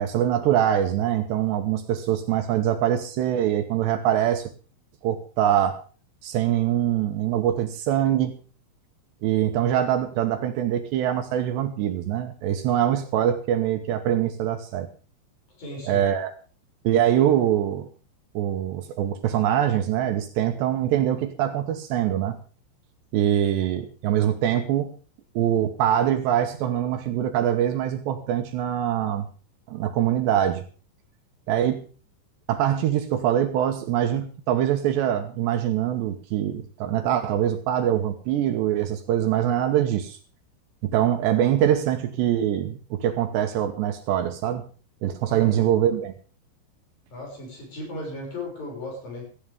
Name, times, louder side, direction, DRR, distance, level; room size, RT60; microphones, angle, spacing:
voice 1, 0.0-4.5 5.0-5.8 6.2-8.4 9.2-14.9 15.9-16.3 16.8-17.9 18.3-22.4 23.1-24.9 25.4-29.3 29.7-30.6 31.5-31.8 32.5-40.2 40.8-44.6 45.0-46.1, right 11 dB, 75° right, 6 dB, 3.0 m, -23 dB
voice 2, 15.5-16.1 45.2-46.0 47.1-49.3, left 2 dB, 45° left, 0 dB, 7.9 m, -36 dB
17.5 x 15.0 x 3.6 m, 0.37 s
omnidirectional pair, 5.5 m